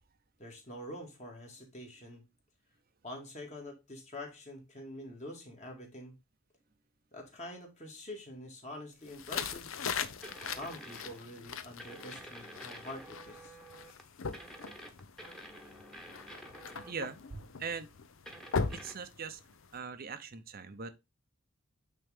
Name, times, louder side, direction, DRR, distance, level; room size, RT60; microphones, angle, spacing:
voice 1, 0.4-2.2 3.0-6.2 7.1-9.7 10.4-13.6, left 1 dB, 35° left, 2.1 m, -46 dB
sound 1, 9.1-19.8, left 5 dB, 70° left, 0.7 m, -40 dB
sound 2, 10.2-11.3 11.8-14.0 14.3-17.1 18.3-18.9, equal, 5° left, 1.2 m, -49 dB
voice 2, 16.9-17.9 18.7-19.4 19.7-20.9, right 5 dB, 45° right, 0.6 m, -41 dB
8.9 x 3.7 x 3.5 m
head